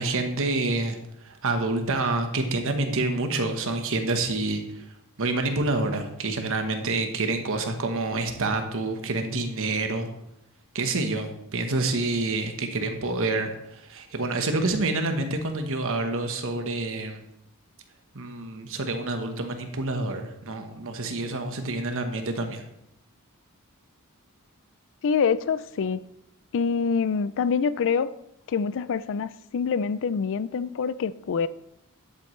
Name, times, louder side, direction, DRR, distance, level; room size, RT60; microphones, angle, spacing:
voice 1, 0.0-4.9 5.2-10.1 10.7-17.2 18.1-22.6, right 2 dB, 65° right, 1.2 m, -28 dB
voice 2, 25.0-26.0 26.5-28.1 28.5-31.5, left 6 dB, 60° left, 0.4 m, -25 dB
11.5 x 8.0 x 3.2 m
head